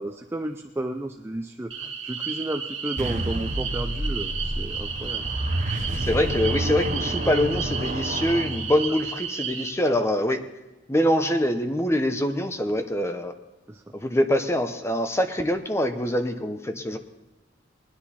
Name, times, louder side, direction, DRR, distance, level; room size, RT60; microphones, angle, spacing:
voice 1, 0.0-5.2 13.7-13.8, right 1 dB, 15° right, 4 dB, 0.5 m, -33 dB
sound 1, 1.7-9.7, right 6 dB, 80° right, 1.9 m, -33 dB
sound 2, 3.0-9.1, right 1 dB, 40° right, 1.0 m, -29 dB
voice 2, 6.0-10.4 10.9-13.3 13.9-17.0, left 1 dB, 15° left, 7 dB, 0.7 m, -24 dB
20.5 x 9.9 x 4.2 m, 1.1 s
head